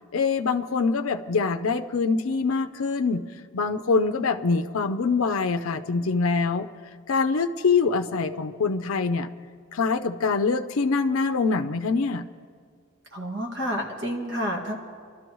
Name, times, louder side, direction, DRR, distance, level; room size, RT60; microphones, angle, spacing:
voice 1, 0.1-3.2 3.5-6.7 7.1-9.3 9.7-12.3, left 4 dB, 80° left, 8 dB, 0.6 m, -24 dB
voice 2, 13.1-14.8, equal, 55° right, 0 dB, 2.0 m, -29 dB
29.0 x 12.5 x 3.1 m, 2.1 s
head